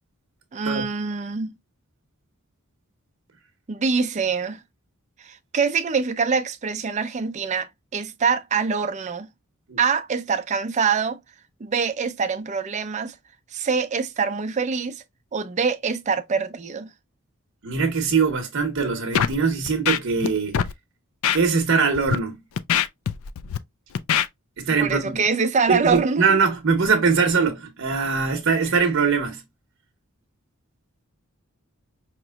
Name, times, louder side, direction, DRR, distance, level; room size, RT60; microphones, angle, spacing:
voice 1, 0.5-1.5 3.7-4.6 5.2-9.3 9.8-11.2 11.6-13.1 13.5-15.0 15.3-16.9 24.8-26.4 28.7-28.8, right 5 dB, 35° right, 0.4 m, -24 dB
voice 2, 17.6-20.6 21.3-22.3 24.6-25.1 25.7-29.4, right 5 dB, 60° right, 0.7 m, -22 dB
Scratching (performance technique), 19.1-19.4 19.7-20.3 20.5-20.7 21.2-21.4 21.9-22.2 22.6-23.6 24.0-24.3, left 8 dB, 70° left, 0.4 m, -22 dB
5.0 x 2.9 x 2.2 m
head